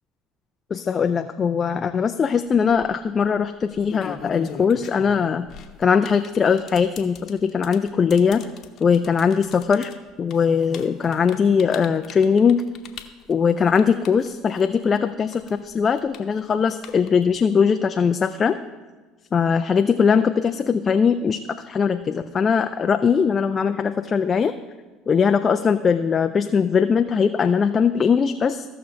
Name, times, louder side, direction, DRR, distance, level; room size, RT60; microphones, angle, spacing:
voice 1, 0.7-5.5 5.8-8.4 8.8-9.9 10.2-12.7 13.3-18.6 19.3-21.4 21.7-24.5 25.1-28.6, left 6 dB, 35° left, 8 dB, 0.4 m, -20 dB
sound 1, 2.5-2.9 3.6-15.0 15.3-17.4, left 7 dB, 55° left, 0.9 m, -40 dB
16.0 x 5.9 x 3.2 m, 1.3 s
hypercardioid pair, 75°, 0 cm